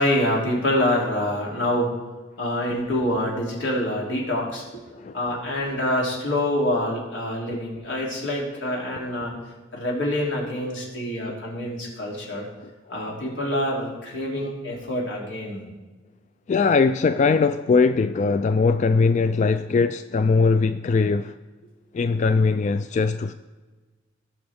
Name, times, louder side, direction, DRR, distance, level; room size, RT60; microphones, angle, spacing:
voice 1, 0.0-1.9 2.4-4.8 5.1-12.5 12.9-15.6, left 1 dB, 85° left, 3.1 m, -26 dB
voice 2, 16.5-21.3 21.9-23.3, left 4 dB, 40° left, 0.3 m, -20 dB
18.0 x 6.1 x 3.6 m
head